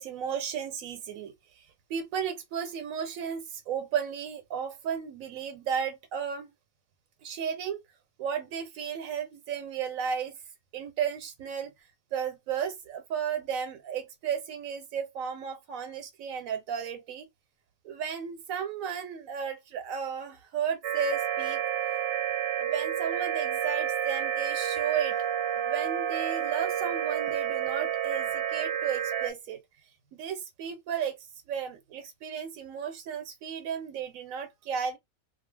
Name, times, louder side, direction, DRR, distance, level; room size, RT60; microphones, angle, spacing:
voice 1, 0.0-6.5 7.2-7.8 8.2-10.4 10.7-11.7 12.1-17.3 17.8-21.6 22.6-25.2 25.5-29.6 30.1-31.2 31.5-35.0, right 7 dB, 85° right, 1.0 m, -34 dB
sound 1, 20.8-29.3, right 9 dB, 60° right, 0.8 m, -30 dB
2.6 x 2.2 x 3.2 m
omnidirectional pair, 1.4 m